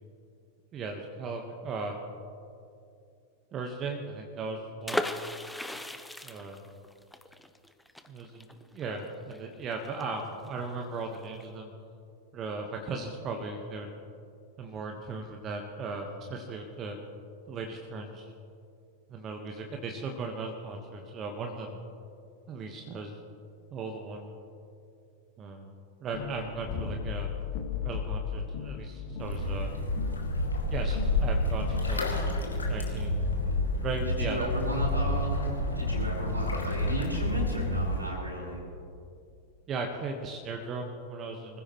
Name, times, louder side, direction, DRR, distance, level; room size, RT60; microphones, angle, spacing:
voice 1, 0.7-2.0 3.5-5.1 6.2-6.6 8.1-11.7 12.3-13.9 14.6-17.0 17.5-18.3 19.1-21.8 22.5-23.2 23.7-24.3 25.4-25.7 26.0-27.3 27.8-29.7 30.7-32.2 32.6-33.2 33.8-34.5 39.7-41.6, right 3 dB, 30° right, 3 dB, 1.4 m, -37 dB
sound 1, 4.8-10.5 10.8-10.9 11.1-11.4, left 1 dB, 5° left, 0.7 m, -36 dB
sound 2, 26.1-32.3, left 7 dB, 45° left, 1.8 m, -37 dB
sound 3, 29.2-38.1, left 1 dB, 75° left, 2.2 m, -29 dB
voice 2, 34.0-38.6, equal, 85° right, -3 dB, 4.8 m, -34 dB
25.0 x 15.0 x 3.2 m, 2.5 s
figure-of-eight pair, 90°, 0 cm